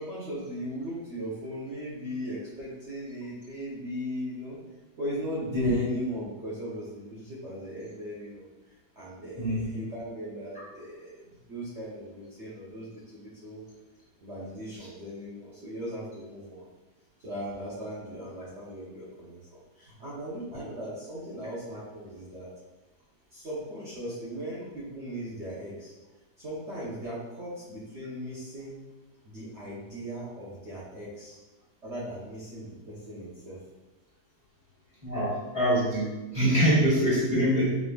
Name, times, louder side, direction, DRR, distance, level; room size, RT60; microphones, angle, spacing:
voice 1, 0.0-4.6 5.0-8.5 9.0-13.6 14.2-16.7 17.2-22.5 23.3-25.9 26.4-28.8 29.2-31.4 31.8-33.6, equal, 50° right, -8 dB, 1.0 m, -37 dB
voice 2, 9.4-9.7 35.0-37.7, equal, 35° left, -8 dB, 1.6 m, -24 dB
5.0 x 3.4 x 2.3 m, 1.1 s
omnidirectional pair, 1.8 m